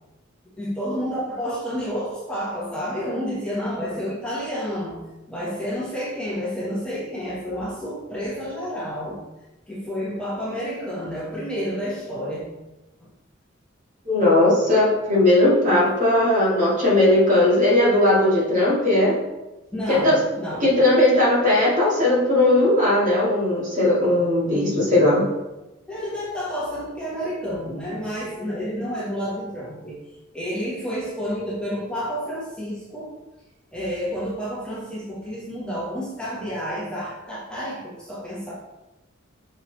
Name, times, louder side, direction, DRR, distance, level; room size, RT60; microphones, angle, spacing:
voice 1, 0.6-9.2 9.7-12.5 13.0-13.1 15.7-15.9 19.7-20.7 25.9-30.1 30.3-33.2 33.7-38.5, equal, 5° left, -8 dB, 1.2 m, -30 dB
voice 2, 14.1-19.2 19.9-20.2 20.6-25.3, left 1 dB, 40° right, -6 dB, 2.1 m, -18 dB
6.1 x 4.0 x 4.0 m, 1.0 s
head